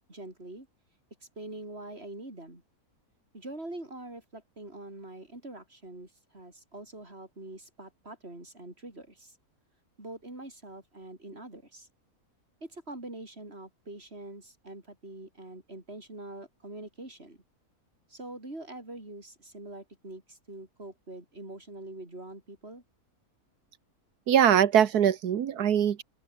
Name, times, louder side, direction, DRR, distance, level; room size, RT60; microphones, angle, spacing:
voice 1, 0.1-0.7 1.2-2.6 3.3-9.4 10.0-11.9 12.6-17.4 18.1-22.8, right 2 dB, 40° right, 6.1 m, -44 dB
voice 2, 24.3-26.0, right 9 dB, 85° right, 1.7 m, -22 dB
open air
omnidirectional pair, 1.6 m